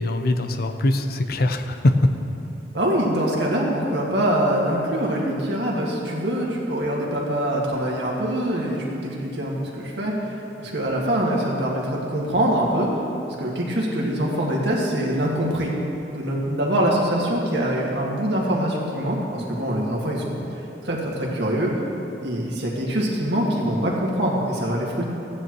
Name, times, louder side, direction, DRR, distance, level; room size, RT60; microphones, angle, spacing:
voice 1, 0.0-2.2, left 1 dB, 60° left, 7 dB, 0.6 m, -21 dB
voice 2, 2.7-12.9 13.3-15.7 16.1-20.4 20.8-21.7 22.2-25.0, right 1 dB, 75° right, -3 dB, 1.9 m, -24 dB
15.5 x 9.5 x 3.1 m, 2.9 s
head